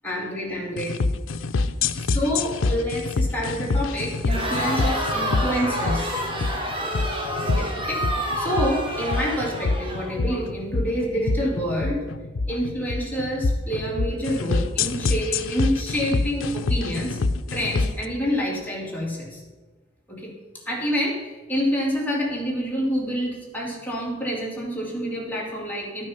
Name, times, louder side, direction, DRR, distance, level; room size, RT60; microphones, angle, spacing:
voice 1, 0.0-1.0 1.9-6.1 7.5-12.1 12.5-17.2 17.5-19.4 20.1-20.3 20.7-26.1, equal, 10° left, -3 dB, 2.4 m, -27 dB
sound 1, 0.8-18.1, left 3 dB, 80° left, 0.5 m, -26 dB
Crowd, 4.2-10.4, equal, 25° right, 1.6 m, -29 dB
12.0 x 6.4 x 5.7 m, 1.3 s
head